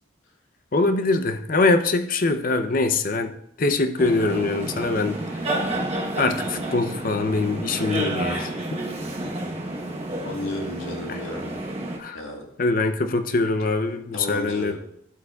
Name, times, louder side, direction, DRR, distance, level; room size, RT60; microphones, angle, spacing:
voice 1, 0.7-3.3 3.6-5.2 6.2-8.5 11.1-11.2 12.0-12.2 12.6-14.8, left 3 dB, 40° left, 8 dB, 0.6 m, -23 dB
sound 1, 4.0-12.0, right 1 dB, 30° right, 1.0 m, -30 dB
voice 2, 10.2-11.5 12.1-12.4 14.1-14.8, left 2 dB, 80° left, 1 dB, 1.6 m, -33 dB
12.0 x 8.0 x 2.3 m, 0.72 s
head